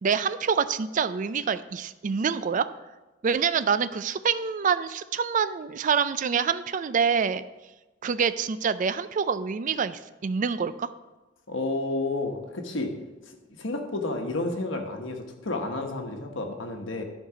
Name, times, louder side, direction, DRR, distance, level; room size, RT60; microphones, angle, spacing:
voice 1, 0.0-2.6 3.2-7.4 8.0-10.9, right 6 dB, 45° right, 14 dB, 0.4 m, -26 dB
voice 2, 11.5-12.9 13.6-17.0, left 2 dB, 85° left, 3 dB, 1.2 m, -31 dB
11.0 x 4.6 x 4.9 m, 1.1 s
head